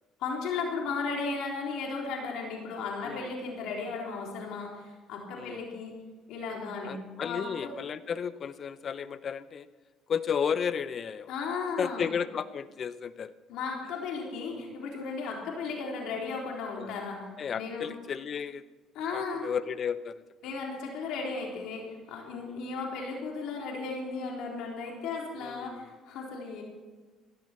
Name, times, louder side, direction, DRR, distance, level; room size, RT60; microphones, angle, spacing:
voice 1, 0.2-5.9 6.3-7.0 7.2-7.7 11.3-12.1 13.5-17.3 17.6-17.9 19.0-19.5 20.4-26.6, left 4 dB, 75° left, -1 dB, 3.6 m, -35 dB
voice 2, 6.8-9.7 10.1-11.3 11.8-13.3 14.6-14.7 16.7-17.0 17.4-18.6 19.1-20.2 22.3-22.6 25.4-25.9, left 7 dB, 45° left, 15 dB, 0.7 m, -33 dB
16.0 x 15.0 x 4.4 m, 1.3 s
supercardioid pair, 85°, 0 cm